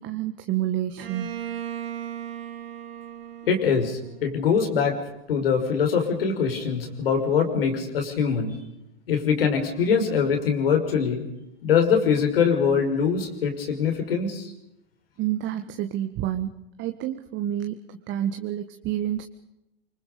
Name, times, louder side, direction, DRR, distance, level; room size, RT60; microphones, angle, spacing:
voice 1, 0.0-1.3 15.2-16.5 16.8-17.7 18.1-19.2, right 12 dB, 40° right, 6 dB, 1.7 m, -28 dB
Bowed string instrument, 1.0-4.7, right 10 dB, 75° right, 4.3 m, -37 dB
voice 2, 3.4-5.0 5.3-8.5 9.1-11.2 11.6-14.5, left 6 dB, 75° left, 4 dB, 5.9 m, -23 dB
27.0 x 25.0 x 5.3 m, 0.88 s
hypercardioid pair, 100°, 29 cm